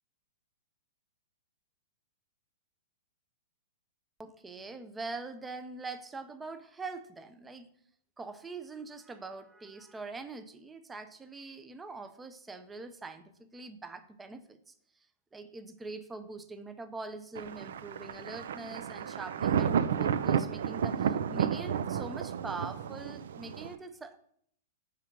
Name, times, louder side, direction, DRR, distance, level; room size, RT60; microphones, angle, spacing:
voice 1, 4.2-7.7 8.2-14.7 15.3-24.3, right 3 dB, 10° right, 9 dB, 0.5 m, -43 dB
Thunder, 17.3-23.7, right 8 dB, 75° right, 0.4 m, -31 dB
5.8 x 3.5 x 5.9 m, 0.66 s
hypercardioid pair, 130°, 0 cm